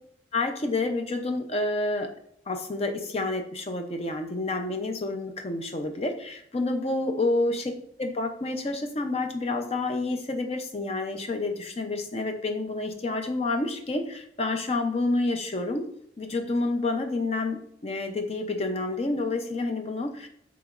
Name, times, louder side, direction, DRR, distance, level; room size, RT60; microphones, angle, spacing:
voice 1, 0.3-2.1 2.5-15.8 16.2-20.3, left 2 dB, 35° left, 5 dB, 0.5 m, -29 dB
6.6 x 3.0 x 2.5 m, 0.68 s
head